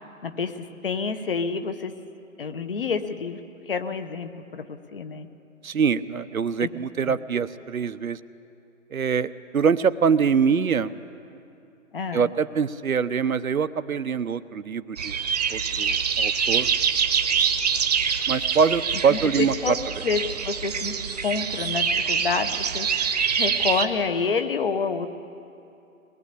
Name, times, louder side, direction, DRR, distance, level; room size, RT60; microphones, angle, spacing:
voice 1, 0.2-1.9 2.4-5.3 6.6-6.7 7.0-7.2 11.9-12.2 19.1-19.8 20.0-21.0 21.2-22.9 23.4-25.1, left 5 dB, 40° left, 10 dB, 1.2 m, -28 dB
voice 2, 5.6-8.2 8.9-10.9 12.1-15.1 15.5-16.7 18.3-19.8, right 6 dB, 90° right, 12 dB, 0.9 m, -24 dB
sound 1, 15.0-23.8, right 6 dB, 30° right, 1.0 m, -25 dB
22.5 x 19.0 x 8.4 m, 2.7 s
hypercardioid pair, 160°, 41 cm